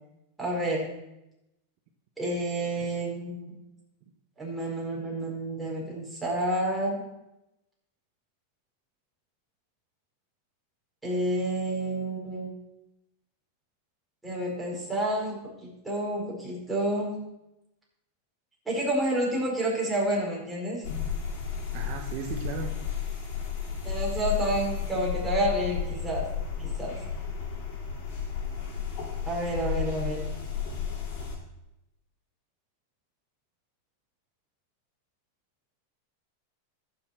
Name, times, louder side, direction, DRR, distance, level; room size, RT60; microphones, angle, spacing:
voice 1, 0.4-0.9 2.2-3.5 4.4-7.0 11.0-12.5 14.2-17.2 18.6-20.9 23.8-26.3 26.6-27.0 29.2-30.3, right 1 dB, 5° right, -4 dB, 4.7 m, -29 dB
sound 1, 20.8-31.3, left 7 dB, 50° left, 4.4 m, -33 dB
voice 2, 21.7-22.7 28.2-28.4, right 6 dB, 55° right, 3 dB, 1.2 m, -36 dB
14.0 x 6.9 x 4.4 m, 0.90 s
supercardioid pair, 135°, 0 cm